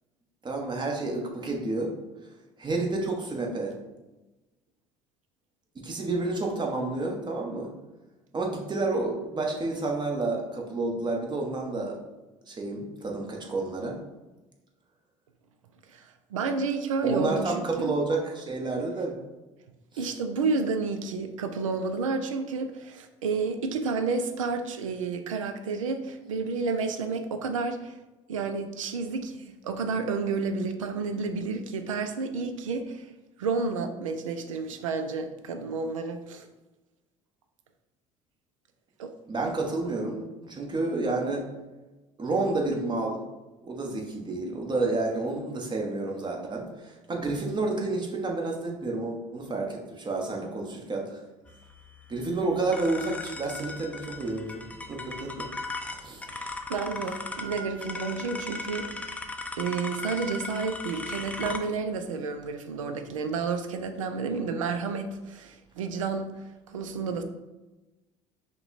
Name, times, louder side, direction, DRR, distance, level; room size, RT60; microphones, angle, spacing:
voice 1, 0.4-1.9 2.6-3.7 5.7-7.7 8.3-12.0 12.5-14.0 17.0-19.2 19.9-20.1 39.3-41.4 42.2-43.2 43.6-51.2 52.1-55.5 56.0-56.2, right 2 dB, 30° right, 0 dB, 1.2 m, -30 dB
voice 2, 15.9-17.9 20.0-28.0 28.3-33.1 33.4-36.5 39.0-39.1 56.3-59.1 59.6-66.3 66.7-67.2, right 4 dB, 85° right, 7 dB, 0.5 m, -31 dB
sound 1, 51.5-61.6, left 3 dB, 10° left, 0.5 m, -38 dB
5.6 x 2.3 x 4.0 m, 1.1 s
hypercardioid pair, 65°, 16 cm